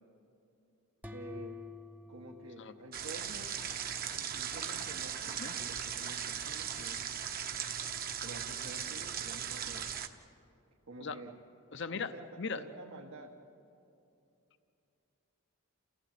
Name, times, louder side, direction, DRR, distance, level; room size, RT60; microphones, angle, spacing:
sound 1, 1.0-3.8, left 4 dB, 5° right, 0.7 m, -49 dB
voice 1, 1.1-1.6 2.1-3.6 4.1-7.1 8.2-9.9 10.9-11.4 11.9-12.3 12.6-13.4, right 2 dB, 80° right, -1 dB, 1.7 m, -49 dB
sound 2, 2.9-10.1, right 8 dB, 40° right, 1.0 m, -38 dB
voice 2, 11.7-12.6, left 5 dB, 55° left, 11 dB, 0.7 m, -39 dB
29.0 x 15.5 x 9.2 m, 2.7 s
head